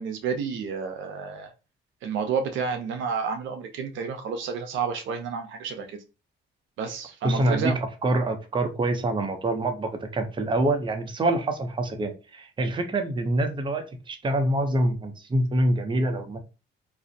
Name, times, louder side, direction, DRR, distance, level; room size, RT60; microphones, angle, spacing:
voice 1, 0.0-1.5 2.0-6.0 6.8-7.8, right 6 dB, 75° right, 0.5 m, -30 dB
voice 2, 7.2-7.7 8.0-16.4, right 1 dB, 25° right, 0.6 m, -25 dB
2.5 x 2.0 x 2.6 m
cardioid pair, 90°, 20 cm